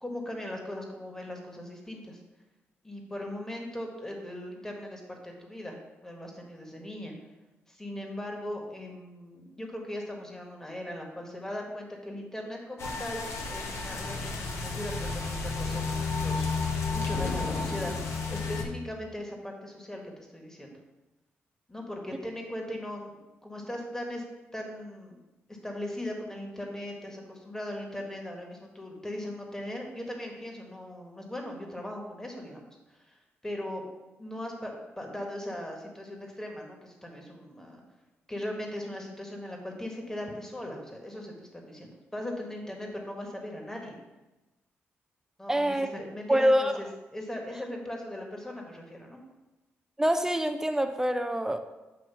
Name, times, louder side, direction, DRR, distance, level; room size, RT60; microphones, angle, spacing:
voice 1, 0.0-2.2 2.8-5.8 6.0-7.1 7.7-16.6 16.9-20.7 21.7-24.2 24.5-25.2 25.5-33.8 34.2-37.8 38.3-44.0 45.4-49.2, left 1 dB, 10° left, 1 dB, 1.5 m, -39 dB
sound 1, 12.8-18.6, left 4 dB, 75° left, 1.1 m, -32 dB
voice 2, 45.5-45.9 46.3-46.7 50.0-51.6, equal, 10° right, 7 dB, 0.4 m, -25 dB
7.9 x 3.0 x 5.6 m, 1.1 s
cardioid pair, 75°, 5 cm